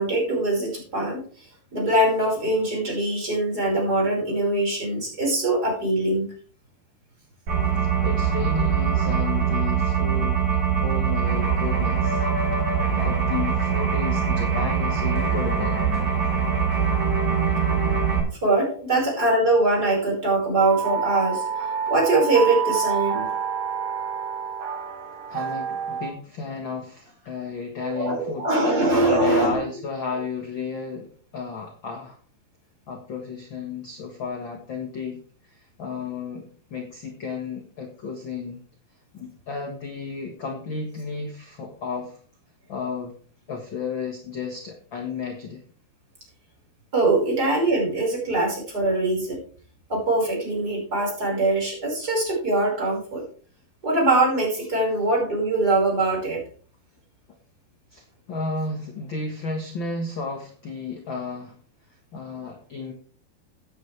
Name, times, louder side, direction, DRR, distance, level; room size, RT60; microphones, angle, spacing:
voice 1, 0.0-6.3 18.4-21.4 21.9-23.3 27.8-29.5 46.9-49.4 49.9-53.2 53.8-56.4, right 2 dB, 25° right, -1 dB, 5.4 m, -22 dB
sound 1, 7.5-18.2, right 7 dB, 60° right, 8.7 m, -23 dB
voice 2, 7.7-12.3 12.9-15.8 25.3-28.5 29.0-32.2 32.9-38.6 39.1-42.2 42.7-43.2 43.5-45.6 57.9-61.6 61.9-62.9, left 4 dB, 55° left, 3 dB, 1.4 m, -33 dB
sound 2, 20.6-26.1, right 7 dB, 90° right, 4.4 m, -28 dB
15.0 x 9.5 x 3.3 m, 0.43 s
omnidirectional pair, 4.5 m